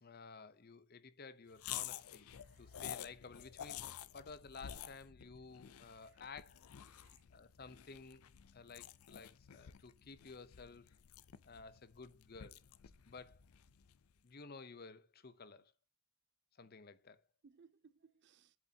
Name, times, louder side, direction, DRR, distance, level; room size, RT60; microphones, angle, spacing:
voice 1, 0.0-2.3 2.6-6.6 7.3-10.9 11.4-12.6 13.1-13.4 14.2-15.7 16.6-17.2, left 4 dB, 45° left, 0.7 m, -54 dB
sound 1, 1.6-14.0, left 11 dB, 80° left, 0.5 m, -51 dB
voice 2, 2.3-2.8 6.0-6.1 6.9-7.2 17.4-18.6, right 5 dB, 50° right, 0.4 m, -67 dB
7.9 x 7.5 x 2.8 m
head